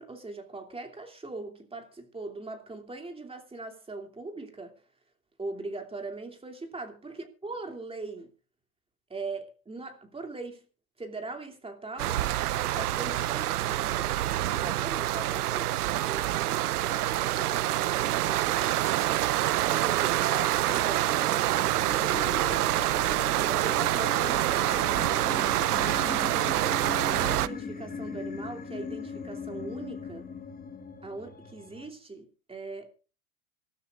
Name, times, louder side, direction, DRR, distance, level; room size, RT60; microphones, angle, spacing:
voice 1, 0.0-4.7 5.4-8.3 9.1-10.6 11.0-12.2 12.6-14.1 14.5-18.9 19.6-21.4 21.9-22.7 23.4-25.4 27.1-30.3 31.0-32.9, right 3 dB, 10° right, 2.9 m, -41 dB
sound 1, 12.0-27.5, right 14 dB, 80° right, 0.8 m, -26 dB
sound 2, 19.9-31.9, left 5 dB, 20° left, 1.9 m, -40 dB
26.0 x 13.0 x 2.5 m
hypercardioid pair, 100°, 45 cm